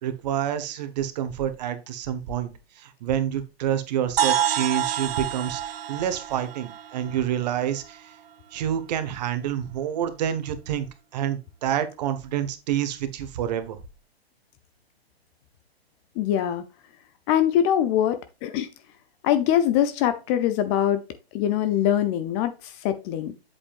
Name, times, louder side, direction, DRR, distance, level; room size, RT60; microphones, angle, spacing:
voice 1, 0.0-2.5 2.8-8.1 8.5-10.9 11.1-13.8, right 10 dB, 40° right, 10 dB, 1.5 m, -28 dB
sound 1, 4.2-7.9, right 10 dB, 65° right, 0.6 m, -28 dB
voice 2, 16.2-16.6 17.3-18.7 19.2-21.0 21.3-23.3, left 10 dB, 25° left, 11 dB, 0.8 m, -23 dB
8.4 x 7.9 x 2.5 m, 0.27 s
figure-of-eight pair, 125°, 32 cm